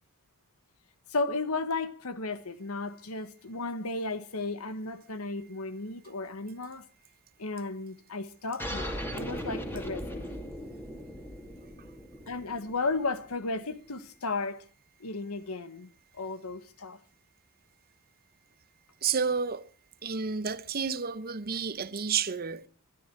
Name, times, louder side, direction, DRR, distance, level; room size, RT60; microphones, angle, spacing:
voice 1, 1.1-6.9 7.4-10.2 12.3-14.6 15.0-17.0, left 3 dB, 75° left, 1.3 m, -34 dB
sound 1, 8.6-13.7, equal, 10° left, 2.6 m, -38 dB
voice 2, 19.0-19.6 20.0-22.7, right 6 dB, 45° right, 0.9 m, -30 dB
23.0 x 12.0 x 4.6 m
head